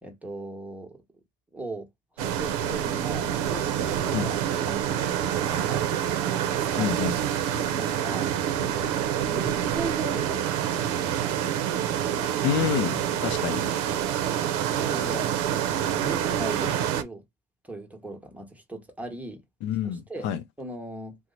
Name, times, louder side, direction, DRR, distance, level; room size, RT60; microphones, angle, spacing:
voice 1, 0.0-1.0 1.5-1.9 2.1-5.9 6.6-7.1 7.5-9.0 9.3-11.2 13.9-15.4 16.0-17.2 17.6-19.4 20.1-20.3 20.6-21.2, right 1 dB, 5° right, 1.0 m, -39 dB
sound 1, 2.2-17.0, right 10 dB, 90° right, 0.5 m, -27 dB
voice 2, 6.8-7.1 12.4-13.6 19.6-20.4, left 9 dB, 70° left, 0.5 m, -28 dB
3.0 x 2.1 x 3.8 m
supercardioid pair, 100°, 19 cm